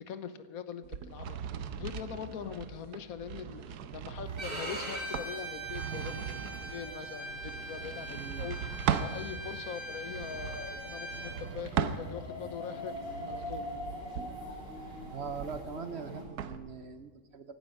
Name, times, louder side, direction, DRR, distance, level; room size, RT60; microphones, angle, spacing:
voice 1, 0.1-1.4 1.8-6.4 6.7-12.9 13.3-13.6, left 7 dB, 70° left, 12 dB, 1.3 m, -42 dB
sound 1, 0.8-9.2 10.0-12.5 12.9-16.6, right 8 dB, 90° right, 1.3 m, -38 dB
sound 2, 4.2-16.2, left 1 dB, 40° left, 2.8 m, -45 dB
Bowed string instrument, 4.4-11.3, right 2 dB, 35° right, 3.2 m, -41 dB
voice 2, 8.2-8.5 15.1-17.5, right 6 dB, 55° right, 9 dB, 0.8 m, -41 dB
16.0 x 11.5 x 5.3 m, 1.4 s
omnidirectional pair, 1.6 m